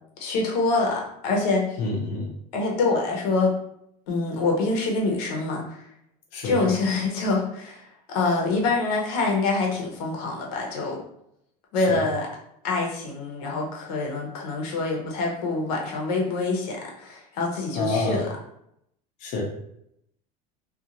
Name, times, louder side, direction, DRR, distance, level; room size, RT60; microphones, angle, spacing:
voice 1, 0.2-1.8 2.5-3.5 4.1-5.8 6.4-11.0 11.7-12.3 12.6-18.3, left 3 dB, 85° left, -1 dB, 0.8 m, -25 dB
voice 2, 1.8-2.3 6.3-6.6 11.9-12.0 17.8-18.2 19.2-19.4, left 3 dB, 40° left, -2 dB, 0.6 m, -27 dB
2.5 x 2.4 x 2.8 m, 0.75 s
cardioid pair, 165°, 20 cm